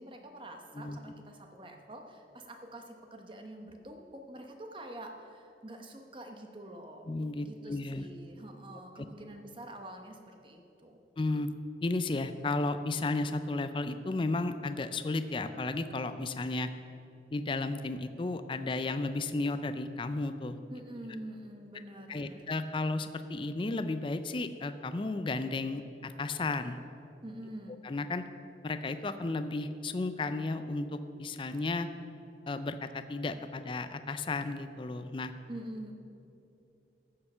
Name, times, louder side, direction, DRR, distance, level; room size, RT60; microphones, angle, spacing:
voice 1, 0.0-7.1 7.4-11.0 20.7-22.4 27.2-27.8 35.5-35.9, right 1 dB, 30° right, 4 dB, 1.0 m, -46 dB
voice 2, 7.1-8.0 11.2-11.5 11.8-16.7 17.3-20.6 22.1-26.8 27.8-28.2 28.6-31.9 32.5-35.3, left 2 dB, 30° left, 10 dB, 0.4 m, -33 dB
14.5 x 6.7 x 5.5 m, 2.8 s
head